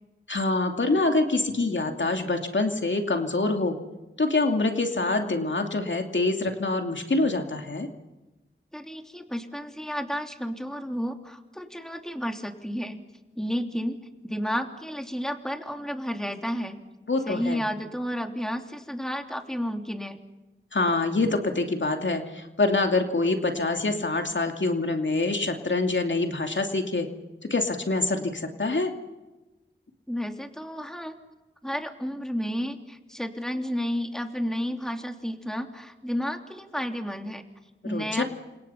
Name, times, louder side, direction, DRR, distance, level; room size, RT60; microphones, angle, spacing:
voice 1, 0.3-3.8 4.2-7.9 17.1-17.6 20.7-27.1 27.5-28.9 37.9-38.2, left 2 dB, 65° left, 4 dB, 2.6 m, -25 dB
voice 2, 8.7-13.0 13.4-14.0 14.2-16.8 17.2-20.2 30.1-31.2 31.6-37.4 37.8-38.2, equal, 5° left, 4 dB, 3.1 m, -31 dB
30.0 x 26.5 x 5.8 m, 1.1 s
wide cardioid pair, 65°, 21 cm